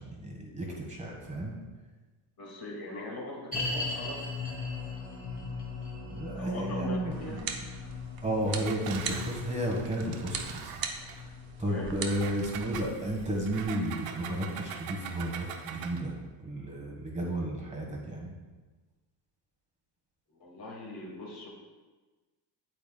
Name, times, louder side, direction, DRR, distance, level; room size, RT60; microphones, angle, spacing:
voice 1, 0.0-1.5 6.0-7.4 8.2-10.7 11.0-11.3 11.6-16.1 16.4-18.3, right 1 dB, 15° right, -3 dB, 1.4 m, -33 dB
voice 2, 2.4-4.2 6.4-7.4 11.5-12.0 20.3-21.5, left 2 dB, 45° left, -2 dB, 2.2 m, -41 dB
sound 1, 3.5-14.8 15.1-15.2 15.8-15.9, left 3 dB, 15° left, 1.8 m, -40 dB
sound 2, 7.1-13.6, right 5 dB, 45° right, 0.9 m, -41 dB
Engine, 8.4-11.2 12.0-16.1, right 7 dB, 85° right, 0.8 m, -43 dB
8.7 x 8.5 x 2.3 m, 1.3 s
cardioid pair, 125°, 50 cm